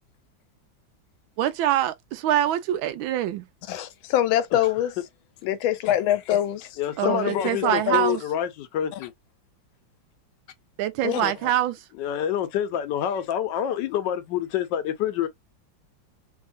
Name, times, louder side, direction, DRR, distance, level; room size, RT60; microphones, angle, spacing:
voice 1, 1.4-3.4 7.0-8.2 10.8-11.8, right 12 dB, 90° right, 1.4 m, -24 dB
voice 2, 3.7-4.9 5.4-6.8 7.0-8.1 8.9-9.0 11.0-11.3, left 12 dB, 90° left, 1.4 m, -25 dB
voice 3, 6.8-9.1 12.0-15.3, left 10 dB, 75° left, 1.2 m, -27 dB
3.5 x 2.8 x 2.4 m
omnidirectional pair, 2.1 m